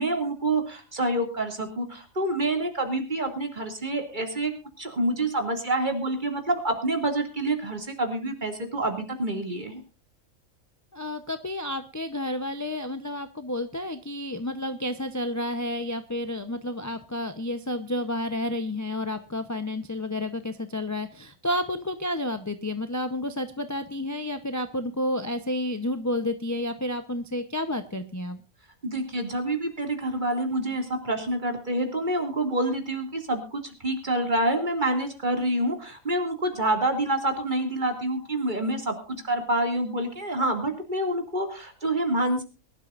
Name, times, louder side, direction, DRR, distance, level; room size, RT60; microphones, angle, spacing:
voice 1, 0.0-4.5 4.8-9.8 28.8-42.4, right 1 dB, 35° right, 4 dB, 2.6 m, -27 dB
voice 2, 10.9-28.4, left 1 dB, 15° left, 8 dB, 0.6 m, -30 dB
23.0 x 12.0 x 2.5 m, 0.34 s
omnidirectional pair, 1.5 m